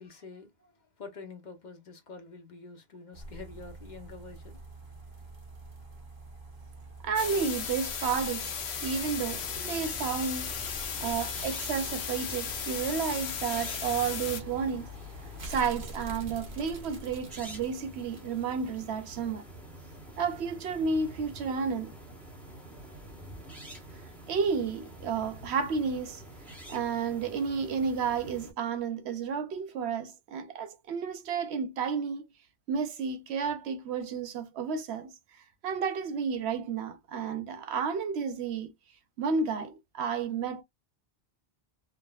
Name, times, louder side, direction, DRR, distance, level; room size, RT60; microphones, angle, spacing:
voice 1, 0.0-5.3, left 4 dB, 50° left, 1.0 m, -47 dB
sound 1, 3.1-18.8 19.2-19.3, equal, 55° right, 1.1 m, -46 dB
voice 2, 7.0-10.5 11.0-14.9 15.4-19.5 20.2-21.9 24.3-26.2 26.7-32.2 32.7-35.1 35.6-38.7 39.2-40.6, right 6 dB, 90° right, 0.9 m, -31 dB
sound 2, 7.2-14.4, left 7 dB, 85° left, 1.0 m, -36 dB
sound 3, 8.8-28.5, right 1 dB, ahead, 1.2 m, -47 dB
3.6 x 2.3 x 2.3 m
omnidirectional pair, 1.1 m